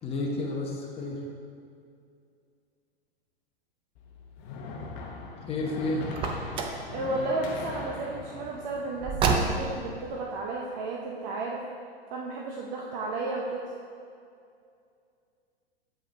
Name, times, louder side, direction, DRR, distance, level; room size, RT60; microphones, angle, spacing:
voice 1, 0.0-1.2 5.5-6.0, left 2 dB, 20° left, -1 dB, 1.0 m, -31 dB
sound 1, 4.0-10.1, left 4 dB, 45° left, 1.0 m, -41 dB
Car, 6.1-6.9 9.0-9.9, right 4 dB, 15° right, 0.4 m, -27 dB
voice 2, 6.9-11.6 12.1-13.7, right 2 dB, 45° right, -1 dB, 0.7 m, -33 dB
7.7 x 4.9 x 3.4 m, 2.4 s
hypercardioid pair, 110°, 31 cm